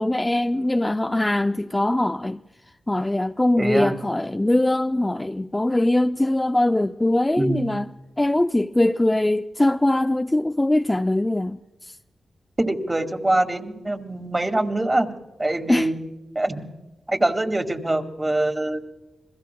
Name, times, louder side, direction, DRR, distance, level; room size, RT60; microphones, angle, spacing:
voice 1, 0.0-2.4 2.9-7.9 8.2-11.6 15.7-15.9, left 1 dB, 15° left, 0.5 m, -21 dB
voice 2, 3.6-4.0 7.4-7.8 12.6-15.1 15.4-16.0 16.4-16.7 17.1-18.8, right 1 dB, 20° right, 2.0 m, -24 dB
29.5 x 21.5 x 2.3 m
cardioid pair, 65°, 0 cm